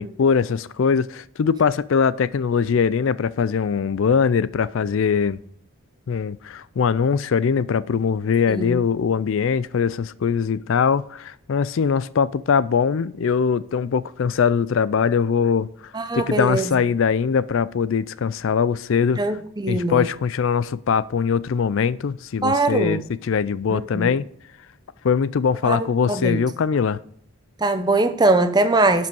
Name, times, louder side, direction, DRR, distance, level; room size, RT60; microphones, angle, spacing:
voice 1, 0.0-5.4 6.1-15.7 16.1-19.2 19.7-24.2 25.0-27.0, left 6 dB, 60° left, 0.4 m, -21 dB
voice 2, 8.5-8.8 15.9-16.7 19.2-20.1 22.4-23.0 23.7-24.1 25.6-26.4 27.6-29.1, right 2 dB, 20° right, 0.7 m, -21 dB
11.5 x 5.4 x 5.4 m
head